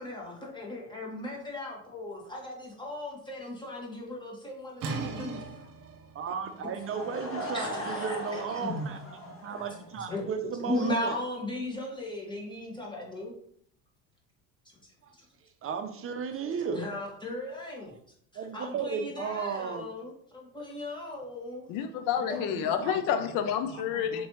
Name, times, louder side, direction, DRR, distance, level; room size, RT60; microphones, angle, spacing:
voice 1, 0.0-5.4 7.5-8.9 10.1-10.2 10.6-13.3 16.7-17.9 18.3-21.7 22.3-22.4, left 1 dB, 10° left, -2 dB, 1.4 m, -37 dB
sound 1, 4.8-10.4, right 4 dB, 55° right, 1.0 m, -42 dB
voice 2, 6.1-11.1 15.0-15.1 15.6-16.8 18.3-19.9 22.5-23.0 23.7-24.3, right 6 dB, 35° right, 7 dB, 0.6 m, -35 dB
Laughter / Crowd, 6.7-10.3, equal, 35° left, 1.2 m, -38 dB
voice 3, 21.7-24.3, left 8 dB, 60° left, 9 dB, 0.6 m, -29 dB
4.4 x 3.1 x 3.0 m, 0.65 s
supercardioid pair, 85°, 39 cm